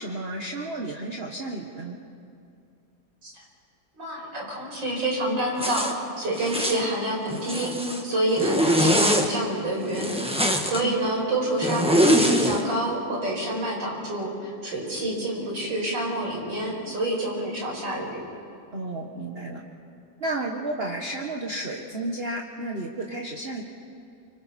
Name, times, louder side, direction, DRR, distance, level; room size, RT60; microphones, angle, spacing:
voice 1, 0.0-2.0 10.8-11.0 18.7-19.6 20.2-23.6, right 2 dB, 35° right, 1 dB, 1.4 m, -32 dB
voice 2, 4.0-5.9 6.2-18.1, right 1 dB, 80° right, -2 dB, 5.9 m, -28 dB
Zipper (clothing), 5.6-5.9 6.4-6.8 7.3-8.0 8.4-9.3 9.9-10.8 11.6-12.6, equal, 5° right, 1.3 m, -22 dB
29.5 x 25.0 x 4.3 m, 2.5 s
omnidirectional pair, 2.0 m